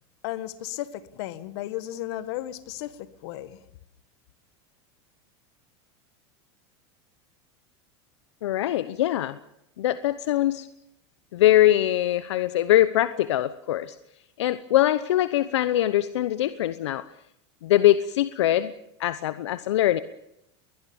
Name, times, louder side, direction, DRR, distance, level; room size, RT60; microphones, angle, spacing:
voice 1, 0.2-3.6, left 14 dB, 70° left, 1.8 m, -34 dB
voice 2, 8.4-9.4 9.8-10.7 11.3-13.9 14.4-17.0 17.6-18.7 19.0-20.0, left 13 dB, 85° left, 0.9 m, -22 dB
21.5 x 20.5 x 7.1 m
supercardioid pair, 120°, 14 cm